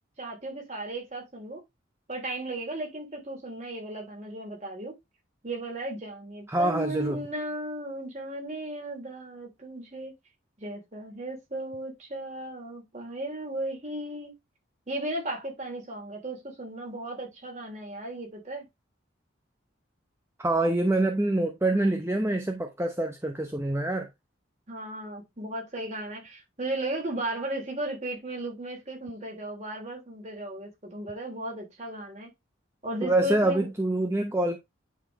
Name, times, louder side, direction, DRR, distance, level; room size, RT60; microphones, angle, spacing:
voice 1, 0.2-1.6 2.1-4.9 5.4-10.1 10.6-14.3 14.9-18.7 24.7-32.3 32.8-33.7, right 1 dB, 35° right, 3.1 m, -35 dB
voice 2, 6.5-7.2 20.4-24.1 33.0-34.6, right 2 dB, 15° right, 0.8 m, -26 dB
10.5 x 4.4 x 3.1 m
head